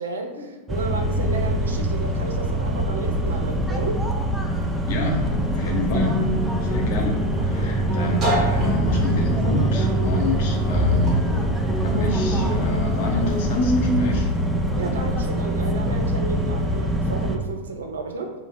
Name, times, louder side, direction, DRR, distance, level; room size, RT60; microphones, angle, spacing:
voice 1, 0.0-4.0 14.7-18.3, right 3 dB, 70° right, 3 dB, 0.4 m, -32 dB
sound 1, 0.7-17.4, equal, 5° right, 0.4 m, -24 dB
Guitar, 4.7-14.2, equal, 25° right, 1.2 m, -28 dB
voice 2, 4.9-6.2 6.6-11.2 11.8-14.3, left 1 dB, 50° left, 1 dB, 0.7 m, -28 dB
2.6 x 2.6 x 4.0 m, 1.2 s
figure-of-eight pair, 90°, 0 cm